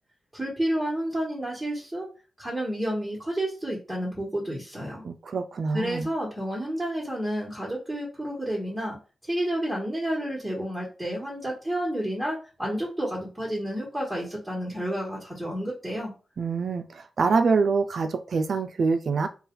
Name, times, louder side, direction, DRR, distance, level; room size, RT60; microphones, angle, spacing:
voice 1, 0.3-2.1 2.4-5.0 5.7-9.0 9.2-16.1, right 1 dB, 10° right, -4 dB, 1.4 m, -30 dB
voice 2, 5.0-6.1 16.4-19.3, right 4 dB, 65° right, 8 dB, 0.4 m, -25 dB
4.1 x 2.4 x 3.7 m, 0.34 s
cardioid pair, 85°, 0 cm